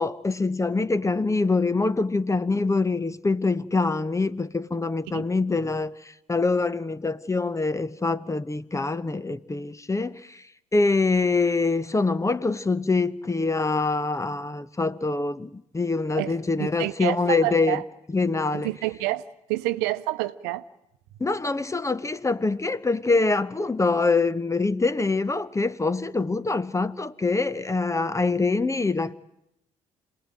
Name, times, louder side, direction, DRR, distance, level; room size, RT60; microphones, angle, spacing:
voice 1, 0.0-10.4 10.7-17.8 18.1-18.7 21.2-29.2, left 3 dB, 15° left, 1.0 m, -25 dB
voice 2, 16.1-17.8 18.5-19.2 19.5-20.6, right 17 dB, 70° right, 0.9 m, -28 dB
26.5 x 19.0 x 9.0 m
hypercardioid pair, 50°, 17 cm